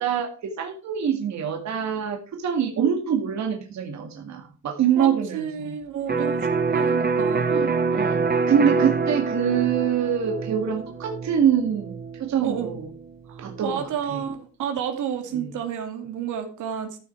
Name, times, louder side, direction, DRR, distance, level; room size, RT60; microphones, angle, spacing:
voice 1, 0.0-5.8 6.8-7.0 7.5-12.9 13.4-14.2 15.3-15.5, right 8 dB, 65° right, 2 dB, 2.2 m, -25 dB
voice 2, 5.3-7.7 12.4-12.7 13.3-17.0, right 8 dB, 80° right, 5 dB, 2.8 m, -31 dB
Electric guitar, 6.1-13.7, right 4 dB, 30° right, 1.2 m, -26 dB
14.0 x 6.7 x 4.7 m, 0.39 s
cardioid pair, 90°, 30 cm